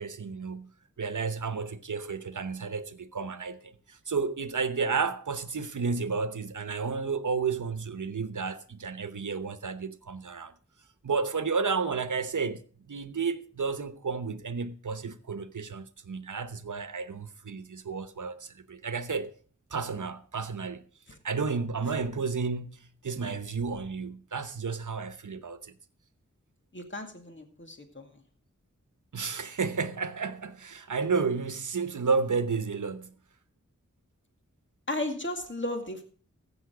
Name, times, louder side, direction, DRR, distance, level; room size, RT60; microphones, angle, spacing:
voice 1, 0.0-10.5 11.0-19.3 19.7-20.8 21.2-25.8 29.1-33.1, right 5 dB, 85° right, 0.9 m, -32 dB
voice 2, 26.7-28.2 34.9-36.0, left 1 dB, 40° left, 2.2 m, -35 dB
15.5 x 7.0 x 4.9 m
wide cardioid pair, 55°, 30 cm